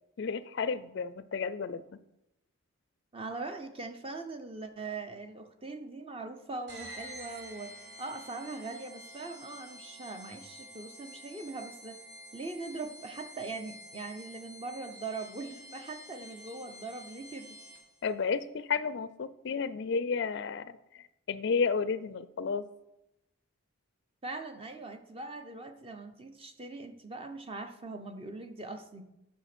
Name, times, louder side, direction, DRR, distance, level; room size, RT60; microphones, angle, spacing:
voice 1, 0.2-2.0 18.0-22.6, left 5 dB, 55° left, 15 dB, 0.4 m, -32 dB
voice 2, 3.1-7.7 8.0-12.0 12.3-17.6 24.2-29.0, right 3 dB, 25° right, 7 dB, 0.7 m, -41 dB
sound 1, 6.7-18.1, equal, 50° right, 1.8 m, -49 dB
8.0 x 6.5 x 6.0 m, 0.89 s
head